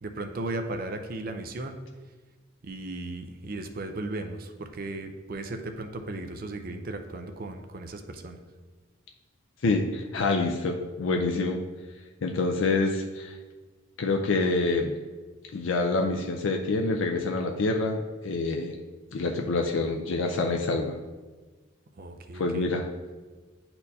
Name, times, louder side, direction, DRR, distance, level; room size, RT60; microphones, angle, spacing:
voice 1, 0.0-1.8 2.6-8.4 22.0-22.7, right 2 dB, 45° right, 6 dB, 0.5 m, -36 dB
voice 2, 9.6-11.6 12.2-13.4 14.0-15.0 15.5-18.0 18.2-18.7 19.1-21.0 22.3-22.8, left 3 dB, 75° left, 2 dB, 0.5 m, -26 dB
9.6 x 4.4 x 2.7 m, 1.3 s
head